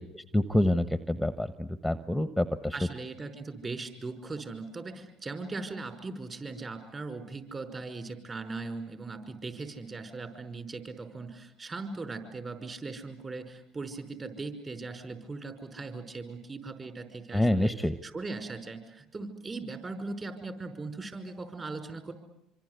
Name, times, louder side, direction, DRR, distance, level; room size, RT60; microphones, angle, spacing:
voice 1, 0.1-2.7 17.3-17.9, left 1 dB, ahead, 11 dB, 1.2 m, -27 dB
voice 2, 2.7-17.8 18.0-22.1, right 3 dB, 30° right, 7 dB, 5.4 m, -39 dB
26.0 x 25.5 x 8.3 m, 0.81 s
supercardioid pair, 80°, 0 cm